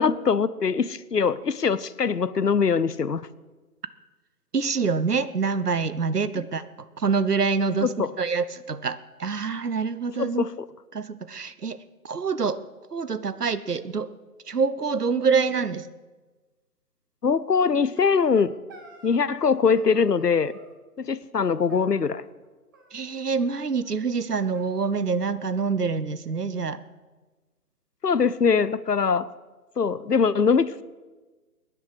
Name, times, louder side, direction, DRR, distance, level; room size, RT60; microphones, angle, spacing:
voice 1, 0.0-3.3 7.8-8.1 10.2-10.5 17.2-18.5 19.0-20.5 21.0-22.2 28.0-29.3 29.8-30.8, left 5 dB, 80° left, 17 dB, 0.8 m, -22 dB
voice 2, 4.5-6.6 7.0-10.5 10.9-11.8 12.0-12.6 12.9-14.1 14.5-15.9 22.9-26.8, right 5 dB, 75° right, 14 dB, 1.1 m, -26 dB
sound 1, 17.6-19.5 19.7-20.8 21.7-22.5 22.7-23.6 23.8-23.9 24.2-24.3 24.5-25.6, right 2 dB, 15° right, 0.8 m, -51 dB
22.5 x 10.0 x 5.0 m, 1.3 s
figure-of-eight pair, 140°, 47 cm